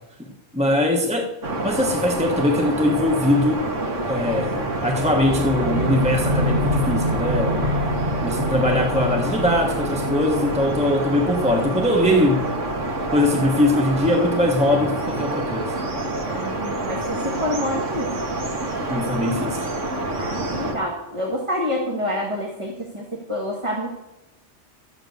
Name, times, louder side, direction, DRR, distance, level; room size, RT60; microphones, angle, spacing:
voice 1, 0.2-1.3 1.6-3.6 4.1-7.7 8.2-12.5 13.1-15.7 18.9-19.7, left 1 dB, 5° right, 2 dB, 1.0 m, -21 dB
sound 1, 1.4-20.7, right 2 dB, 90° right, 2.2 m, -27 dB
sound 2, 4.3-14.3, equal, 50° right, 1.7 m, -28 dB
voice 2, 7.6-8.1 16.3-18.2 20.2-23.9, left 1 dB, 25° right, -2 dB, 2.0 m, -28 dB
13.0 x 7.9 x 7.9 m, 0.95 s
omnidirectional pair, 1.2 m